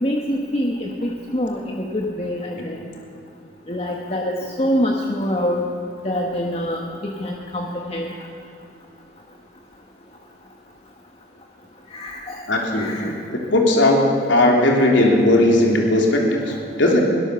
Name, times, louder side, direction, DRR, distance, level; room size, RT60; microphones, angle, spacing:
voice 1, 0.0-2.8 3.7-5.6 6.0-8.1 11.9-12.4 12.7-13.1, equal, 30° left, 0 dB, 1.5 m, -25 dB
voice 2, 12.5-17.0, left 1 dB, 85° left, 0 dB, 3.4 m, -17 dB
23.5 x 18.0 x 7.0 m, 2.7 s
head